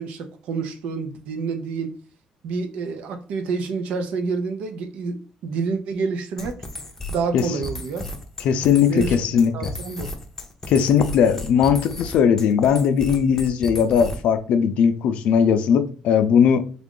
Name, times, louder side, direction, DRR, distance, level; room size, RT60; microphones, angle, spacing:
voice 1, 0.0-1.9 2.4-6.6 7.1-8.1 8.9-9.2 9.5-10.1, right 4 dB, 75° right, 0.6 m, -28 dB
sound 1, 6.4-14.4, left 1 dB, 15° left, 0.6 m, -34 dB
voice 2, 8.4-9.7 10.7-16.7, left 7 dB, 70° left, 0.4 m, -19 dB
3.5 x 2.4 x 3.7 m
cardioid pair, 150°, 2 cm